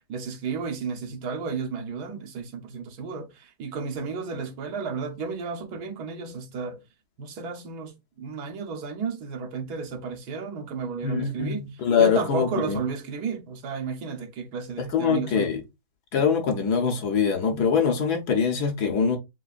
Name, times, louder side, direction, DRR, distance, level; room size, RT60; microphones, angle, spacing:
voice 1, 0.0-6.8 7.2-15.5, right 5 dB, 70° right, 1.4 m, -33 dB
voice 2, 11.0-12.8 14.8-15.6 16.1-19.2, left 6 dB, 70° left, 1.4 m, -23 dB
7.9 x 2.7 x 2.4 m
omnidirectional pair, 1.8 m